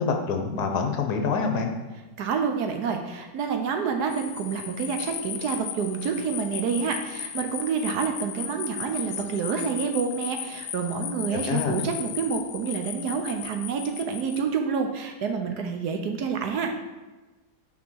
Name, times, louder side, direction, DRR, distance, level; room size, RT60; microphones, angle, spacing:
voice 1, 0.0-1.7 11.3-11.8, left 5 dB, 65° left, 4 dB, 1.3 m, -26 dB
voice 2, 2.2-16.7, right 6 dB, 70° right, 4 dB, 1.1 m, -28 dB
sound 1, 4.1-14.4, left 10 dB, 85° left, 1.3 m, -36 dB
6.1 x 4.3 x 6.1 m, 1.2 s
omnidirectional pair, 2.0 m